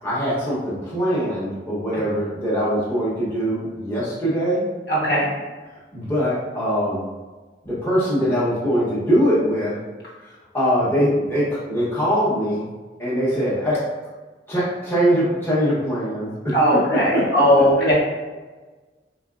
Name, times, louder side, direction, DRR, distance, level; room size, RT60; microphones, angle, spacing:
voice 1, 0.0-4.6 5.9-7.0 7.6-9.8 10.5-12.6 13.0-13.8 14.5-17.9, equal, 15° left, -9 dB, 1.0 m, -22 dB
voice 2, 4.9-5.3 16.5-17.9, equal, 60° left, -6 dB, 1.2 m, -18 dB
4.0 x 2.9 x 2.5 m, 1.3 s
head